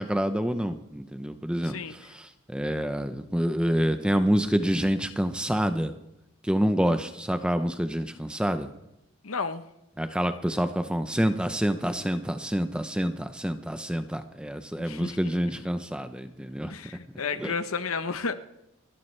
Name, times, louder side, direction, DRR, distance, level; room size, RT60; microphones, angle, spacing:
voice 1, 0.0-5.9 6.4-8.7 10.0-16.7 17.4-17.5, equal, 5° right, 9 dB, 0.6 m, -27 dB
voice 2, 1.6-1.9 9.2-9.7 14.8-15.2 16.6-18.3, left 5 dB, 80° left, 10 dB, 1.0 m, -32 dB
29.0 x 11.5 x 3.3 m, 0.86 s
head